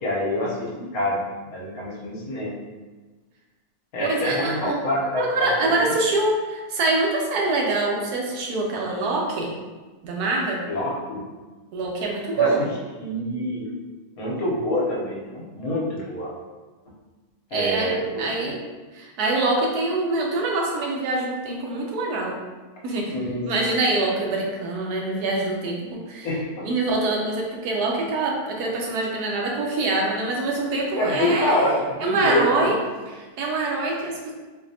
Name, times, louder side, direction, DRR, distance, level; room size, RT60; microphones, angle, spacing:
voice 1, 0.0-2.5 3.9-5.2 5.6-5.9 10.7-11.2 12.4-12.5 13.0-13.7 14.2-16.3 17.5-18.6 23.1-23.7 26.2-26.7 30.9-32.7, left 1 dB, 70° left, -4 dB, 1.3 m, -26 dB
voice 2, 4.0-4.7 5.1-9.5 10.0-10.6 11.7-12.6 17.5-18.6 18.9-22.3 22.8-23.1 23.4-26.3 26.6-31.7 32.0-32.8 33.1-34.3, right 2 dB, 90° right, -1 dB, 1.3 m, -24 dB
4.0 x 2.7 x 2.6 m, 1.3 s
omnidirectional pair, 1.6 m